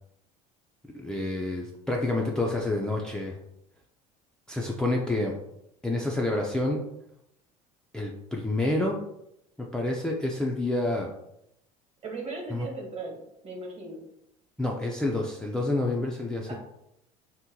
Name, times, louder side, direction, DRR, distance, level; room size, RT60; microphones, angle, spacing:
voice 1, 0.9-3.4 4.5-5.4 5.8-6.8 7.9-9.0 9.6-11.1 12.5-12.7 14.6-16.5, left 2 dB, 5° left, -2 dB, 0.4 m, -28 dB
voice 2, 12.0-13.2 13.4-14.0 16.5-16.6, right 3 dB, 35° right, 1 dB, 1.2 m, -37 dB
2.8 x 2.1 x 3.7 m, 0.80 s
supercardioid pair, 85°, 17 cm